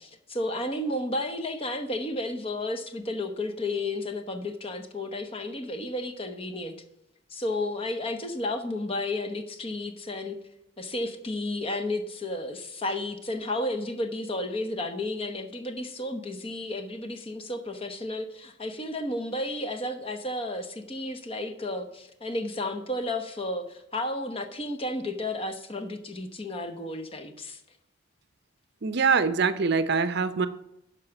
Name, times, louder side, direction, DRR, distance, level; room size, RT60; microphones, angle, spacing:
voice 1, 0.0-6.7 7.3-10.4 10.8-27.6, left 1 dB, 30° left, 7 dB, 1.0 m, -32 dB
voice 2, 28.8-30.5, right 5 dB, 55° right, 12 dB, 0.6 m, -24 dB
11.5 x 4.9 x 5.9 m, 0.84 s
head